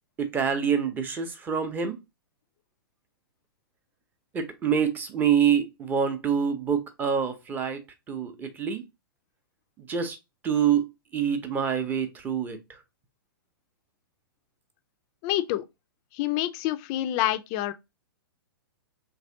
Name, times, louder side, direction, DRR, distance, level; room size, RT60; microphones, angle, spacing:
voice 1, 0.2-2.0 4.3-8.8 9.8-10.2 10.4-10.8 11.1-12.8, right 7 dB, 15° right, 0.6 m, -26 dB
voice 2, 15.2-15.6 16.1-17.7, left 14 dB, 30° left, 0.4 m, -27 dB
4.0 x 3.1 x 2.7 m
figure-of-eight pair, 110°, 12 cm